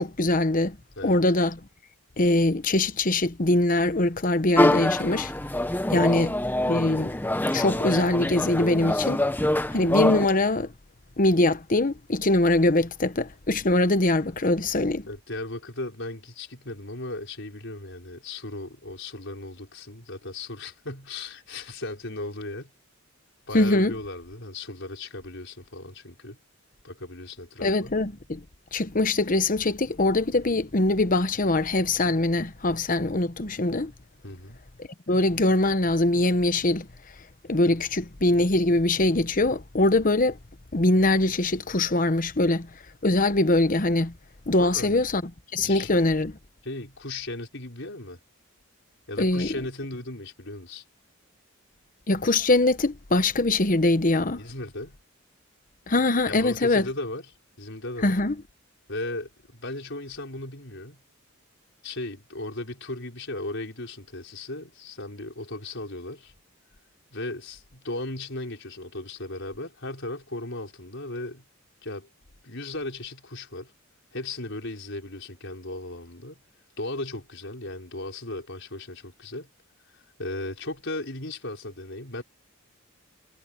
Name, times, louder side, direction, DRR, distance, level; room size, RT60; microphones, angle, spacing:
voice 1, 0.0-0.8 1.0-1.6 2.2-5.3 5.9-6.3 6.7-7.2 7.5-9.2 9.7-10.7 11.2-15.1 23.5-23.9 27.6-28.4 28.7-33.9 34.8-36.9 37.5-40.4 40.7-42.7 43.0-44.1 44.5-45.2 45.5-46.4 49.2-49.5 52.1-54.4 55.9-56.9 58.0-58.3, left 2 dB, 40° left, 1.0 m, -23 dB
sound 1, 4.6-10.3, left 1 dB, 10° left, 0.9 m, -25 dB
voice 2, 5.9-6.3 15.1-22.7 23.5-26.4 26.8-27.9 34.2-34.6 44.6-45.0 45.6-45.9 46.6-48.2 49.1-50.8 54.4-55.0 56.3-57.3 57.6-58.2 58.9-61.0 61.8-66.3 67.1-71.5 71.8-72.1 72.4-73.7 74.1-76.4 76.8-79.5 79.9-82.2, left 2 dB, 60° left, 5.5 m, -36 dB
head